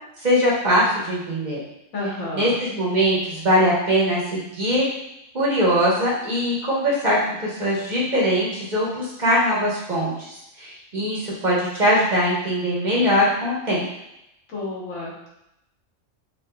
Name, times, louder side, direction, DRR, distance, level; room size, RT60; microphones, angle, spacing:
voice 1, 0.2-1.6 2.3-4.8 5.3-10.1 10.6-13.8, equal, 35° right, -6 dB, 1.2 m, -21 dB
voice 2, 1.9-2.5 14.5-15.3, left 2 dB, 90° left, -5 dB, 1.5 m, -30 dB
5.5 x 2.7 x 2.2 m, 0.84 s
omnidirectional pair, 1.4 m